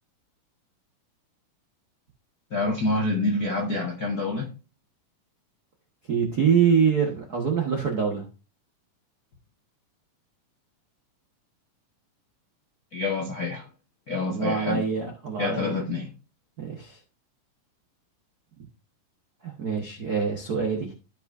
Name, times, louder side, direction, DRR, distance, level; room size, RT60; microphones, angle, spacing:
voice 1, 2.5-4.5 12.9-13.7 14.1-14.8 15.4-16.1, left 2 dB, 80° left, 0.8 m, -27 dB
voice 2, 6.1-8.2 14.3-15.8 16.6-17.0 19.4-20.9, right 6 dB, 65° right, 0.9 m, -25 dB
15.0 x 5.3 x 2.6 m
omnidirectional pair, 4.0 m